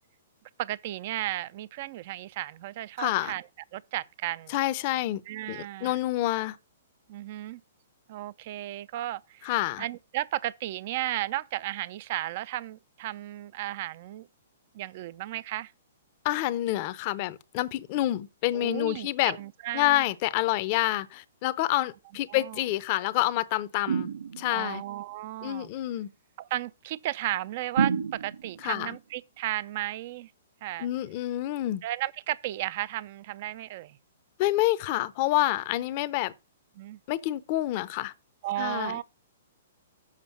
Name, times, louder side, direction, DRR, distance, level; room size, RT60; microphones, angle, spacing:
voice 1, 0.6-3.4 3.7-4.6 5.3-6.0 7.1-7.6 8.1-9.5 9.8-14.3 14.7-15.7 18.5-20.0 22.3-22.6 24.5-25.7 26.4-30.3 30.6-30.9 31.8-34.0 36.8-37.0 38.4-39.0, right 15 dB, 50° right, 0.4 m, -34 dB
voice 2, 3.0-3.3 4.5-5.2 5.5-6.6 9.4-9.8 16.2-19.4 19.7-24.8 25.4-26.1 28.6-29.0 30.8-31.8 34.4-36.3 37.1-38.1 38.6-39.0, left 15 dB, 45° left, 0.7 m, -28 dB
sound 1, 23.9-24.7 27.8-28.7, right 6 dB, 85° right, 0.7 m, -29 dB
7.3 x 5.1 x 7.1 m
hypercardioid pair, 125°, 0 cm